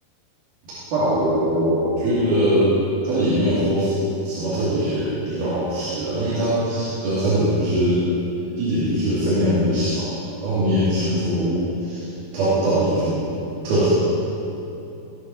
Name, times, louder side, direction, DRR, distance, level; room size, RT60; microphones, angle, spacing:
voice 1, 0.9-2.8 3.0-4.0 4.2-8.0 8.6-10.1 10.4-12.1 12.3-13.2 13.6-13.9, right 1 dB, 65° right, -11 dB, 4.2 m, -21 dB
17.0 x 6.9 x 6.0 m, 2.9 s
omnidirectional pair, 5.0 m